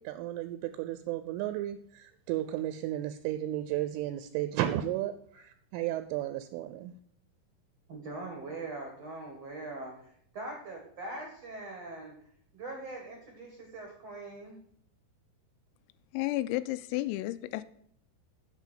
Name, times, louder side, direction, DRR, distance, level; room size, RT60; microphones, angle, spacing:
voice 1, 0.0-6.9, right 13 dB, 85° right, 10 dB, 3.0 m, -34 dB
voice 2, 7.9-12.1 12.5-14.6, right 2 dB, 65° right, 1 dB, 1.5 m, -42 dB
voice 3, 16.1-17.6, left 17 dB, 85° left, 14 dB, 3.2 m, -32 dB
8.2 x 7.0 x 7.4 m, 0.65 s
omnidirectional pair, 5.9 m